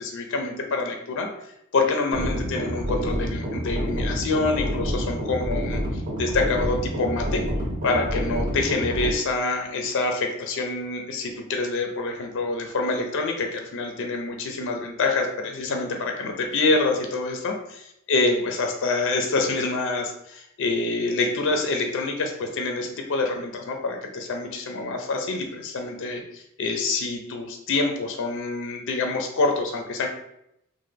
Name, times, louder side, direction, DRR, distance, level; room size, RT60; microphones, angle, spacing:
voice 1, 0.0-7.4 7.8-17.6 18.1-30.1, left 3 dB, 60° left, 3 dB, 0.5 m, -26 dB
sound 1, 2.1-9.1, equal, 40° right, 0.9 m, -28 dB
3.1 x 2.1 x 3.3 m, 0.79 s
head